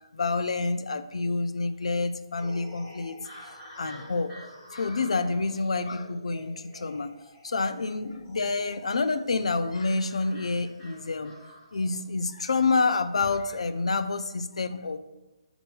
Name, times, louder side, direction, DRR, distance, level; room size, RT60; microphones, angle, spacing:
voice 1, 0.1-4.3 4.7-7.1 7.4-11.4 11.7-15.0, left 3 dB, 90° left, 10 dB, 0.5 m, -28 dB
sound 1, 2.4-12.0, equal, 15° left, 1.9 m, -49 dB
7.7 x 3.0 x 5.3 m, 1.0 s
hypercardioid pair, 170°, 3 cm